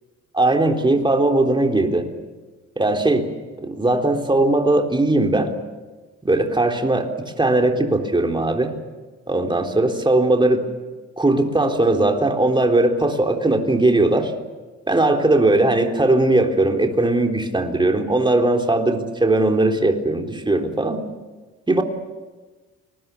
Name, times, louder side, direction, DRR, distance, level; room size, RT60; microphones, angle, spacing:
voice 1, 0.3-2.1 2.8-3.3 3.6-5.5 6.2-8.8 9.3-10.7 11.2-14.3 14.9-21.0 21.7-21.8, right 2 dB, 15° right, 3 dB, 3.7 m, -19 dB
30.0 x 21.0 x 7.0 m, 1.3 s
cardioid pair, 90°, 30 cm